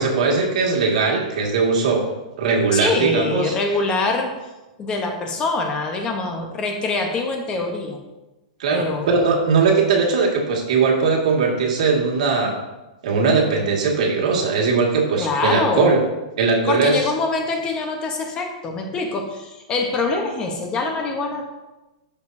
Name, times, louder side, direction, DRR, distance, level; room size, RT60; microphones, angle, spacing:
voice 1, 0.0-2.1 2.4-3.6 8.6-12.6 13.0-16.0 16.4-16.9, right 4 dB, 70° right, -1 dB, 2.0 m, -19 dB
voice 2, 2.7-4.4 4.8-8.0 8.7-9.1 15.2-16.0 16.7-21.4, left 3 dB, 20° left, 3 dB, 1.0 m, -24 dB
12.5 x 5.2 x 2.7 m, 1.1 s
hypercardioid pair, 150°, 4 cm